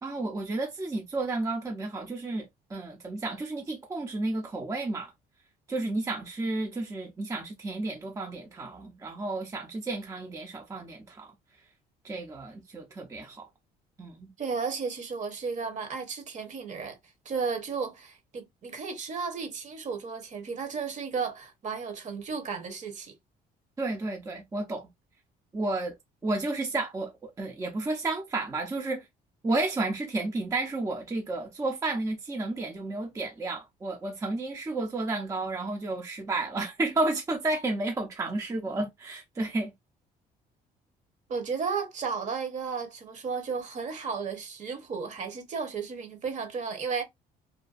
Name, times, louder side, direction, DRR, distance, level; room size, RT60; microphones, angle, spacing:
voice 1, 0.0-5.1 5.7-11.3 12.0-13.5 14.0-14.3 23.8-24.9 25.5-25.9 26.2-29.1 29.4-39.7, right 2 dB, 20° right, 0.5 m, -32 dB
voice 2, 14.4-17.0 17.2-23.2 41.3-47.0, right 5 dB, 45° right, 0.9 m, -34 dB
2.5 x 2.2 x 2.4 m
cardioid pair, 110°, 17 cm